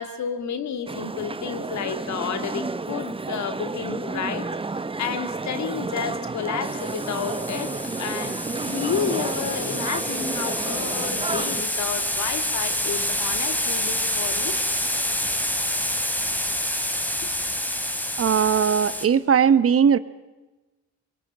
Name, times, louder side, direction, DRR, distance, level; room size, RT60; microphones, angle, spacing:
voice 1, 0.0-7.7 8.0-8.4 8.6-14.6 17.2-17.3 18.5-18.6, left 7 dB, 65° left, 9 dB, 2.6 m, -31 dB
sound 1, 0.9-11.6, right 3 dB, 20° right, 1.0 m, -31 dB
sound 2, 6.6-19.1, left 1 dB, 5° left, 3.0 m, -27 dB
voice 2, 18.2-20.0, right 7 dB, 50° right, 15 dB, 1.2 m, -19 dB
24.0 x 23.0 x 8.9 m, 1.1 s
cardioid pair, 90°, 30 cm